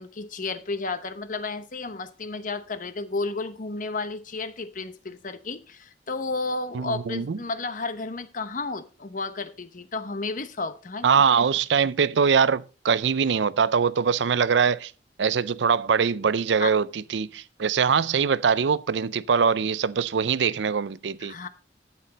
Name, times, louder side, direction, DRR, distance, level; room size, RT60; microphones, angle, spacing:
voice 1, 0.0-11.2 16.6-16.7 21.2-21.5, left 3 dB, 45° left, 0.9 m, -32 dB
voice 2, 6.7-7.4 11.0-14.9 15.2-21.3, right 6 dB, 80° right, 0.5 m, -23 dB
11.5 x 8.4 x 4.1 m
head